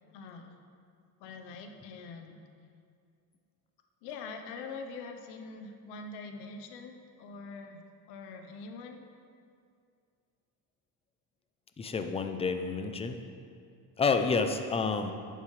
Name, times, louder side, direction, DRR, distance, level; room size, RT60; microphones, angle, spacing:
voice 1, 0.0-0.5 1.2-2.4 4.0-9.0, left 4 dB, 80° left, 5 dB, 1.0 m, -44 dB
voice 2, 11.8-13.2 14.0-15.1, left 4 dB, 15° left, 7 dB, 0.5 m, -29 dB
11.0 x 9.0 x 3.3 m, 2.3 s
cardioid pair, 130°, 40 cm